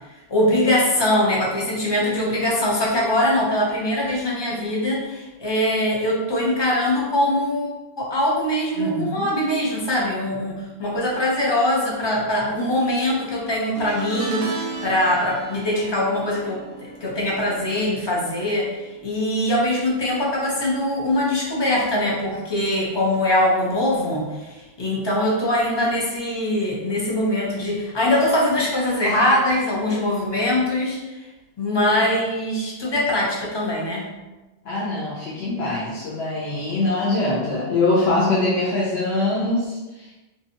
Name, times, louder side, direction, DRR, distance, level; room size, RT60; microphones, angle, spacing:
voice 1, 0.3-31.3 31.6-34.1, left 1 dB, 35° left, -3 dB, 0.4 m, -22 dB
voice 2, 8.8-9.2 32.0-32.1 34.6-40.2, left 2 dB, 65° left, -7 dB, 0.8 m, -23 dB
sound 1, 13.8-19.2 19.4-19.8 21.0-21.1, right 4 dB, 60° right, 0.6 m, -35 dB
2.7 x 2.2 x 2.6 m, 1.1 s
omnidirectional pair, 1.2 m